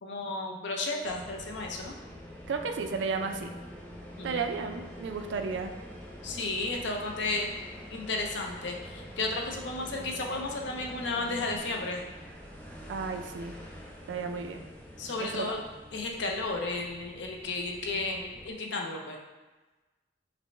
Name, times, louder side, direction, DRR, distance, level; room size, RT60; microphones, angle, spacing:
voice 1, 0.0-2.0 4.2-4.4 6.2-7.5 7.9-12.0 15.0-15.6 15.9-19.2, left 2 dB, 65° left, 1 dB, 0.5 m, -33 dB
sound 1, 1.0-18.5, equal, 10° left, 0.5 m, -46 dB
voice 2, 2.5-3.5 4.2-5.7 12.9-13.6 14.1-14.6 15.2-15.6, right 5 dB, 70° right, 6 dB, 0.3 m, -33 dB
5.0 x 2.1 x 3.2 m, 1.2 s
head